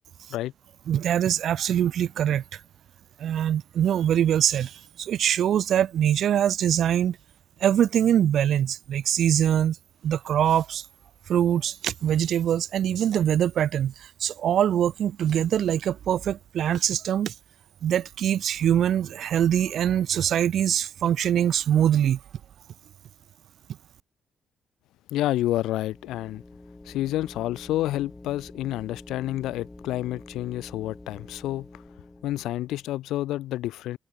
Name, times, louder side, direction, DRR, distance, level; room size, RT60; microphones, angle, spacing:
voice 1, 0.9-2.4 3.2-7.2 7.6-9.8 10.0-10.9 11.3-17.3 17.8-22.2, right 10 dB, 65° right, 0.5 m, -23 dB
voice 2, 25.1-26.4 26.8-31.8 32.2-34.0, left 15 dB, 90° left, 0.6 m, -29 dB
sound 1, 25.3-33.0, left 2 dB, 15° left, 4.6 m, -47 dB
cardioid pair, 90°, 0 cm